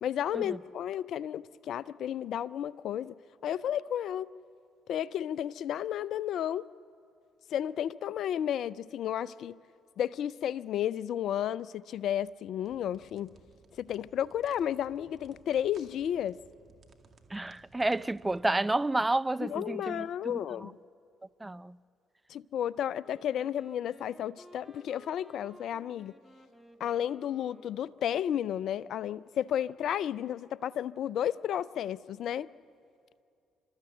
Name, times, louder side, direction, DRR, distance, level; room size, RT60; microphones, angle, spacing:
voice 1, 0.0-3.2 3.4-4.3 4.9-6.7 7.5-9.6 10.0-13.3 13.8-16.4 19.5-20.8 22.3-26.2 26.8-32.5, left 10 dB, 65° left, 0.4 m, -32 dB
sound 1, 12.6-18.5, right 5 dB, 45° right, 2.1 m, -60 dB
voice 2, 17.3-20.7 21.4-21.8, right 2 dB, 15° right, 0.4 m, -31 dB
Wind instrument woodwind instrument, 23.0-28.2, left 1 dB, 10° left, 1.6 m, -57 dB
29.5 x 13.5 x 7.8 m
hypercardioid pair, 50°, 0 cm